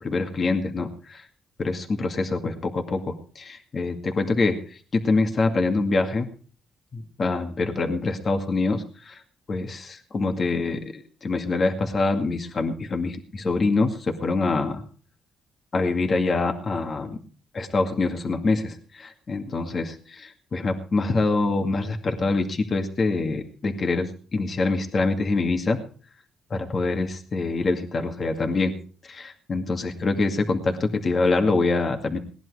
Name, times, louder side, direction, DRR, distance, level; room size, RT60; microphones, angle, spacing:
voice 1, 0.0-1.3 1.6-6.3 6.9-9.2 9.5-14.8 15.7-17.2 17.5-25.8 26.5-28.8 29.0-32.2, left 3 dB, 40° left, 4 dB, 2.2 m, -25 dB
18.5 x 11.0 x 4.9 m, 0.41 s
cardioid pair, 90°, 0 cm